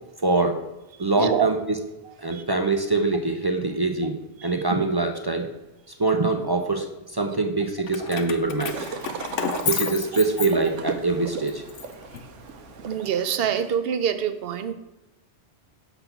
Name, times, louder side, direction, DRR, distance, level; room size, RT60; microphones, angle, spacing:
voice 1, 0.2-0.7 1.0-1.6 2.2-5.6 6.0-8.9 9.6-11.6, right 3 dB, 35° right, 4 dB, 0.4 m, -24 dB
voice 2, 1.0-1.5 2.3-2.4 4.4-4.5 9.7-9.8 12.8-14.7, right 8 dB, 60° right, 10 dB, 0.8 m, -26 dB
Keys jangling, 7.9-11.0 11.5-12.8, left 8 dB, 85° left, 1.0 m, -32 dB
sound 1, 8.6-13.7, right 5 dB, 85° right, 1.0 m, -36 dB
6.7 x 4.1 x 5.8 m, 1.0 s
omnidirectional pair, 1.2 m